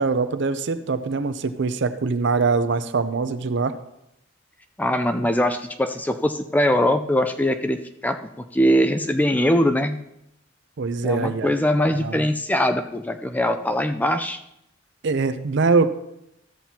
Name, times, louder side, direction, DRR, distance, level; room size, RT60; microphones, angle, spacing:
voice 1, 0.0-3.7 10.8-11.5 12.0-12.3 15.0-15.9, right 4 dB, 65° right, 11 dB, 0.5 m, -23 dB
voice 2, 4.8-7.8 8.0-10.0 11.0-14.4, equal, 10° left, 8 dB, 0.4 m, -22 dB
13.5 x 7.5 x 2.8 m, 0.81 s
head